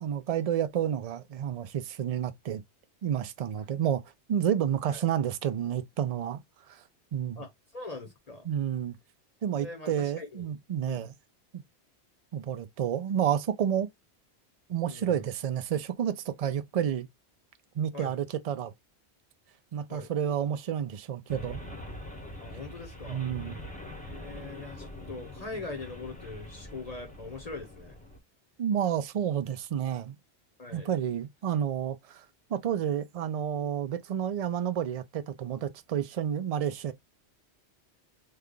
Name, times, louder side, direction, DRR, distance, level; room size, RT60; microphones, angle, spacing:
voice 1, 0.0-2.6 3.0-4.0 4.3-6.4 6.7-6.8 7.1-7.4 8.5-9.0 9.4-11.1 11.5-11.6 12.3-13.9 14.7-17.1 17.8-18.7 19.7-21.6 23.1-23.6 28.6-30.2 30.7-32.2 32.5-36.9, right 9 dB, 55° right, 0.4 m, -30 dB
voice 2, 7.4-8.5 9.6-10.5 10.9-11.1 14.9-15.3 17.9-18.1 19.9-20.1 22.4-23.2 24.0-28.0 30.6-30.9, left 3 dB, 40° left, 0.8 m, -42 dB
sound 1, 21.3-28.2, left 1 dB, 10° left, 0.7 m, -43 dB
3.2 x 2.3 x 3.6 m
omnidirectional pair, 1.1 m